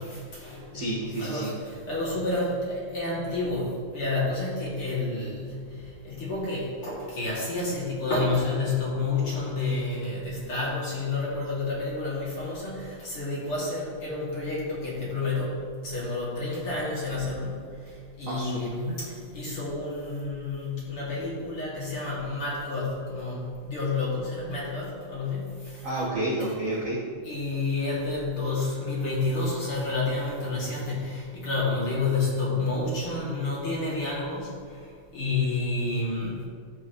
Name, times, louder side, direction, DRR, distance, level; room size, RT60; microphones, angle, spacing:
voice 1, 0.0-25.9 27.2-36.4, left 3 dB, 45° left, -7 dB, 3.0 m, -30 dB
voice 2, 0.7-1.6 18.3-18.6 18.9-19.0 25.8-27.2, right 2 dB, 60° right, -8 dB, 0.8 m, -30 dB
13.0 x 8.3 x 3.0 m, 2.2 s
omnidirectional pair, 3.8 m